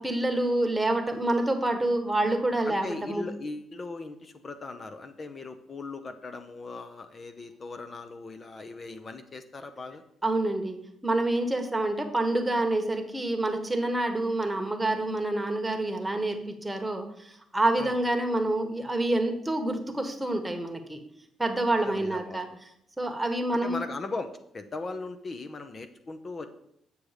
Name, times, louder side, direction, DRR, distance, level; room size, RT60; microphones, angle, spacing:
voice 1, 0.0-3.2 10.2-21.0 21.4-22.5 23.0-23.8, right 2 dB, 10° right, 6 dB, 1.3 m, -27 dB
voice 2, 2.6-10.0 17.8-17.9 21.8-22.6 23.6-26.5, left 3 dB, 35° left, 8 dB, 0.8 m, -39 dB
8.6 x 6.4 x 5.0 m, 0.74 s
cardioid pair, 90°, 0 cm